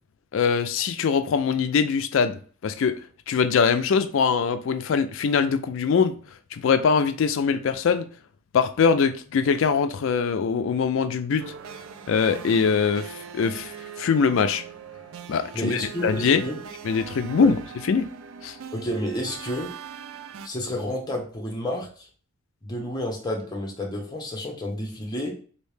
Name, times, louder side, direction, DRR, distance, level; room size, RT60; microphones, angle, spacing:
voice 1, 0.3-2.9 3.3-6.2 6.5-8.1 8.5-11.5 12.1-13.7 14.0-14.6 15.3-16.4 16.8-17.6 17.8-18.1 18.4-18.6, left 6 dB, 60° left, 0.3 m, -22 dB
sound 1, 11.4-20.5, right 7 dB, 65° right, 0.3 m, -40 dB
voice 2, 15.5-16.6 17.4-17.5 18.7-19.7 20.4-22.1 22.6-25.3, left 1 dB, 20° left, 0.7 m, -30 dB
3.2 x 2.7 x 3.2 m
head